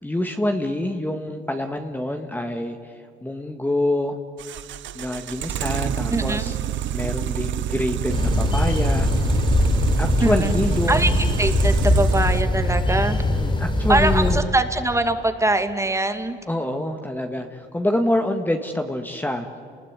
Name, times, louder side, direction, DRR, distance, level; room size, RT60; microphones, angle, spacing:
voice 1, 0.0-4.2 4.9-6.6 6.9-9.1 10.0-11.2 13.3-14.5 16.5-19.5, left 1 dB, 10° left, 5 dB, 1.7 m, -26 dB
sound 1, 4.4-12.4, right 10 dB, 70° right, 0.8 m, -28 dB
voice 2, 6.1-6.4 10.2-10.5 10.9-11.1 11.4-13.2 13.9-16.4, right 2 dB, 15° right, 8 dB, 2.2 m, -22 dB
sound 2, 8.1-14.4, left 1 dB, 25° left, 4.6 m, -21 dB
30.0 x 20.5 x 9.7 m, 2.5 s
cardioid pair, 90°, 20 cm